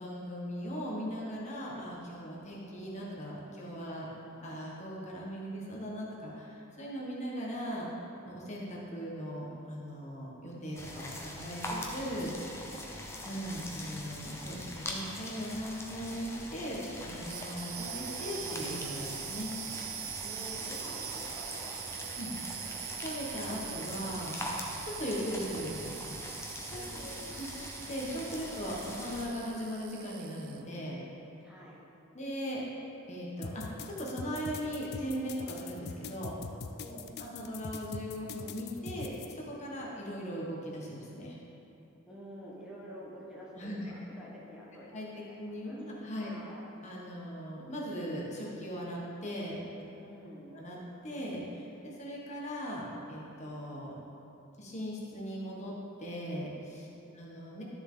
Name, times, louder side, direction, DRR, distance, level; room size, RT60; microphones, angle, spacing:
voice 1, 0.0-4.1 4.4-7.9 8.2-12.7 13.2-19.5 22.1-22.3 23.0-24.4 24.8-26.0 26.7-27.1 27.4-31.0 32.1-32.6 33.1-36.3 36.9-41.4 43.5-44.0 44.9-46.3 46.8-49.9 50.5-50.8 51.0-53.9 54.6-55.7 56.0-56.9 57.1-57.6, equal, 30° left, -4 dB, 1.5 m, -39 dB
sound 1, 10.7-29.3, left 1 dB, 10° left, 0.8 m, -42 dB
voice 2, 12.8-13.1 20.2-22.7 26.7-27.4 31.4-31.8 36.7-37.2 42.1-44.9 45.1-45.9 46.2-46.6 50.0-50.6 56.8-57.2, equal, 5° right, -7 dB, 1.2 m, -49 dB
sound 2, 17.1-30.7, right 12 dB, 75° right, 0.4 m, -43 dB
sound 3, 33.4-39.3, left 5 dB, 50° left, 0.5 m, -42 dB
12.5 x 6.9 x 3.9 m, 2.9 s
head